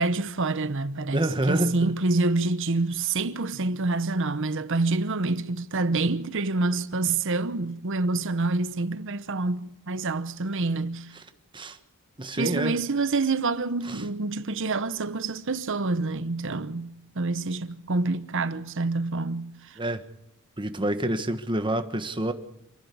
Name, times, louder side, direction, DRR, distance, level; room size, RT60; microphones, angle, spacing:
voice 1, 0.0-11.1 12.4-19.8, right 3 dB, 65° right, 1.0 m, -27 dB
voice 2, 1.1-1.9 11.5-11.8 12.2-12.8 13.8-14.0 19.8-20.0 20.6-22.3, right 1 dB, 25° right, 1.4 m, -27 dB
27.5 x 11.5 x 8.5 m
head